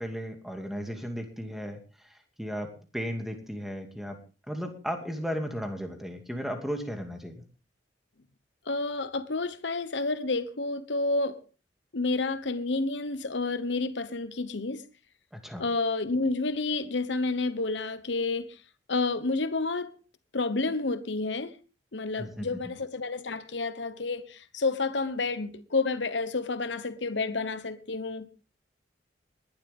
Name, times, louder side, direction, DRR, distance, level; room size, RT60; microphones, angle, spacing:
voice 1, 0.0-2.7 2.9-4.2 4.5-7.4 15.3-15.6 22.2-22.6, equal, ahead, 2.5 m, -35 dB
voice 2, 8.7-11.4 11.9-14.8 15.6-18.6 18.9-19.9 20.3-21.5 21.9-28.3, left 3 dB, 75° left, 1.1 m, -30 dB
20.5 x 12.0 x 3.6 m
head